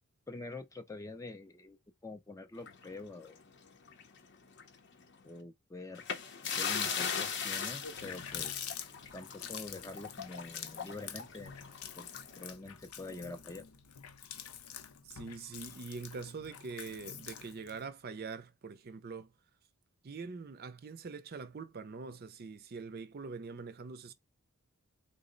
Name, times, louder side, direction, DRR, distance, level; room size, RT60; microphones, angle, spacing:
voice 1, 0.3-1.8 2.0-3.4 5.2-6.0 6.6-8.7 9.1-11.5 12.0-12.1 12.4-13.7, left 2 dB, 15° left, 0.4 m, -46 dB
sound 1, 2.6-4.2 4.5-4.7 5.9-12.4, left 6 dB, 55° left, 0.6 m, -39 dB
Water tap faucet, 7.4-7.5 7.8-17.9, left 8 dB, 90° left, 0.6 m, -46 dB
voice 2, 15.0-19.3 20.0-24.1, right 4 dB, 45° right, 0.5 m, -44 dB
3.7 x 2.0 x 3.7 m
head